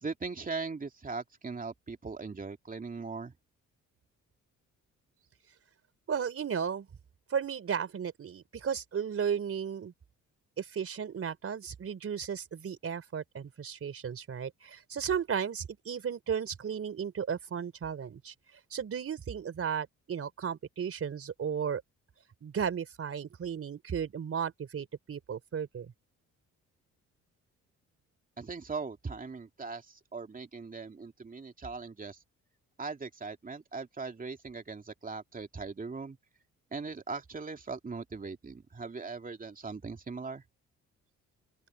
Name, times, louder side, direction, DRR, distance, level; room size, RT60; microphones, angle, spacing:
voice 1, 0.0-3.3 28.4-32.2 32.8-36.2 36.7-40.4, right 4 dB, 30° right, 2.6 m, -40 dB
voice 2, 6.1-6.9 7.3-9.9 10.6-18.3 18.7-21.8 22.4-25.9, right 7 dB, 50° right, 4.1 m, -34 dB
open air
cardioid pair, 90°, 30 cm